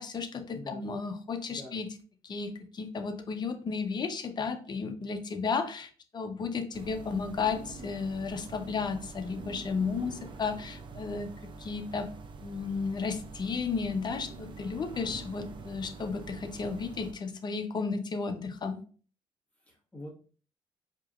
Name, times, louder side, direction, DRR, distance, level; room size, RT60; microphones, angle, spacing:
voice 1, 0.0-1.9 2.2-11.3 11.6-12.1 12.4-18.8, left 5 dB, 40° left, 7 dB, 0.7 m, -33 dB
voice 2, 0.5-0.9 1.5-1.8 19.6-20.1, left 1 dB, 10° left, -2 dB, 1.4 m, -45 dB
sound 1, 6.7-17.1, right 4 dB, 45° right, 0.6 m, -46 dB
4.6 x 2.9 x 2.4 m, 0.40 s
cardioid pair, 75°, 11 cm